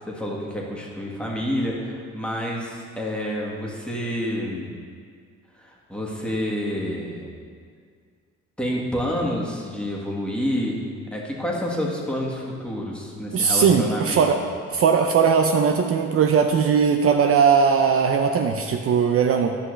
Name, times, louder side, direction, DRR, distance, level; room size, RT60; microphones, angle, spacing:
voice 1, 0.0-4.7 5.5-7.4 8.6-10.8 11.1-14.3, equal, 5° left, -4 dB, 1.7 m, -28 dB
voice 2, 13.3-14.4 14.7-19.6, right 6 dB, 50° right, 4 dB, 0.5 m, -19 dB
12.0 x 5.6 x 3.3 m, 2.1 s
cardioid pair, 90°, 30 cm